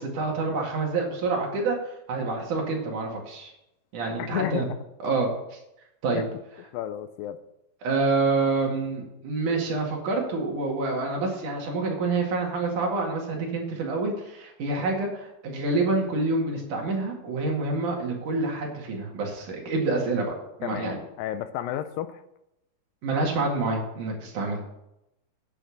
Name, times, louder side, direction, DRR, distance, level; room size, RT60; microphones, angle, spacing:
voice 1, 0.0-1.8 2.1-3.5 3.9-4.7 5.0-5.6 6.0-6.2 7.8-20.3 20.6-21.0 23.0-24.6, right 3 dB, 65° right, 0 dB, 3.5 m, -27 dB
voice 2, 4.2-4.8 6.1-6.3 6.7-7.4 20.6-22.2, left 11 dB, 80° left, 11 dB, 2.4 m, -32 dB
9.7 x 6.7 x 7.1 m, 0.86 s
omnidirectional pair, 4.0 m